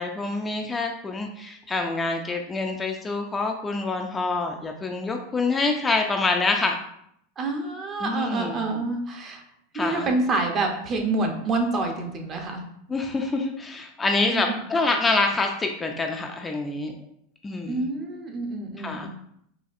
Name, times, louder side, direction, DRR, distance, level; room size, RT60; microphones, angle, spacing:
voice 1, 0.0-6.8 8.0-8.6 9.7-10.1 12.9-16.9 17.4-17.8 18.8-19.1, left 3 dB, 15° left, 3 dB, 0.3 m, -26 dB
voice 2, 7.4-9.4 9.7-12.6 14.3-14.4 17.7-19.1, right 2 dB, 35° right, 3 dB, 0.7 m, -27 dB
4.1 x 2.4 x 2.5 m, 0.72 s
hypercardioid pair, 115°, 0 cm